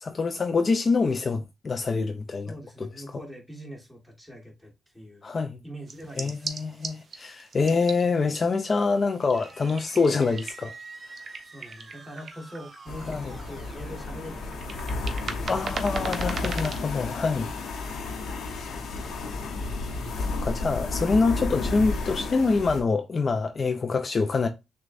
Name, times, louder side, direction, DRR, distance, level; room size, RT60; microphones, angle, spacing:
voice 1, 0.0-2.5 2.8-2.9 5.2-5.6 6.2-10.7 13.1-13.3 15.5-17.5 20.2-24.5, left 4 dB, 40° left, 0.4 m, -25 dB
voice 2, 2.4-5.3 5.6-6.6 11.4-15.4, equal, 5° right, 1.4 m, -43 dB
sound 1, 5.9-16.9, right 4 dB, 50° right, 0.6 m, -40 dB
sound 2, 9.3-15.8, right 2 dB, 35° right, 1.2 m, -47 dB
sound 3, 12.9-22.8, left 3 dB, 80° left, 0.9 m, -32 dB
6.1 x 2.2 x 2.5 m
cardioid pair, 95°, 0 cm